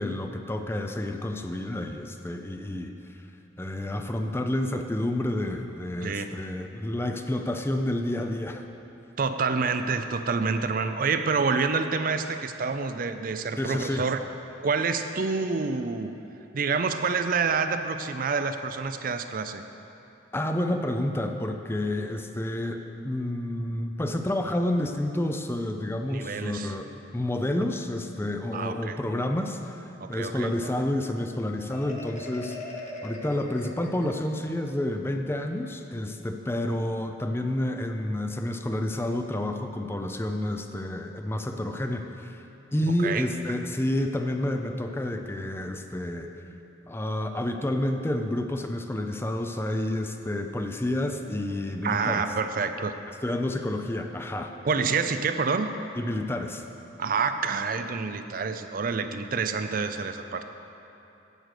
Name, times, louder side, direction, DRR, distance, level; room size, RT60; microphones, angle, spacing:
voice 1, 0.0-2.9 3.6-8.7 13.6-14.1 20.3-26.8 27.1-32.6 33.0-42.4 42.7-46.3 46.9-52.2 53.2-54.5 56.0-56.6, left 1 dB, 15° left, 5 dB, 0.5 m, -29 dB
voice 2, 9.2-14.2 14.6-16.1 16.5-19.6 26.1-26.7 28.5-29.0 30.0-30.5 43.0-43.3 51.8-52.9 54.6-55.7 57.0-60.4, right 5 dB, 50° right, 8 dB, 0.5 m, -27 dB
Marimba xylophone, 31.7-34.5, left 2 dB, 40° left, 1.3 m, -41 dB
10.5 x 7.9 x 6.6 m, 2.9 s
head